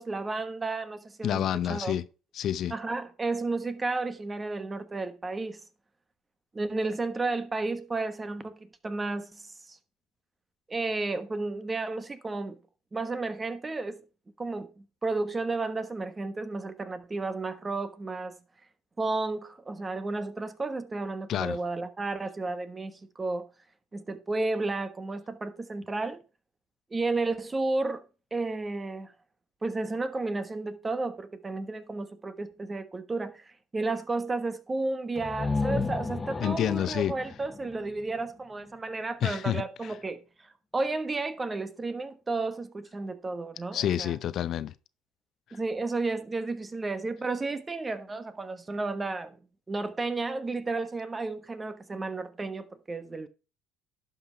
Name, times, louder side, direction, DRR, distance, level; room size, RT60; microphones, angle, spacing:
voice 1, 0.0-1.9 2.7-5.6 6.5-9.8 10.7-12.6 12.9-14.0 14.4-18.3 19.0-23.5 23.9-26.2 26.9-28.0 28.3-29.1 29.6-40.2 40.7-44.1 45.5-49.4 49.7-53.3, right 3 dB, 25° right, 1.2 m, -32 dB
voice 2, 1.2-2.1 2.3-2.7 21.3-21.6 36.4-37.2 39.2-39.9 43.7-44.7, left 10 dB, 55° left, 0.5 m, -28 dB
sound 1, 35.1-38.9, left 3 dB, 25° left, 0.9 m, -33 dB
11.5 x 5.5 x 4.4 m
supercardioid pair, 75°, 0 cm